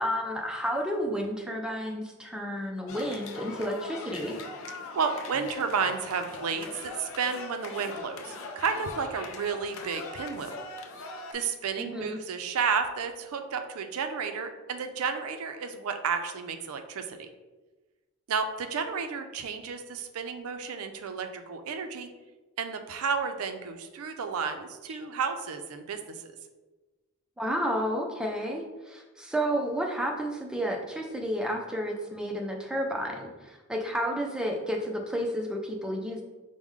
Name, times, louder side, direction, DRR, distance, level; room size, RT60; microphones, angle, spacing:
voice 1, 0.0-4.3 11.8-12.2 24.9-25.0 27.4-36.2, equal, 5° right, 1 dB, 0.3 m, -31 dB
sound 1, 2.9-11.3, left 3 dB, 60° left, 0.4 m, -41 dB
voice 2, 4.7-10.6 11.3-17.3 18.3-22.1 22.6-26.3, right 5 dB, 70° right, 7 dB, 0.4 m, -32 dB
4.7 x 2.1 x 3.6 m, 1.2 s
head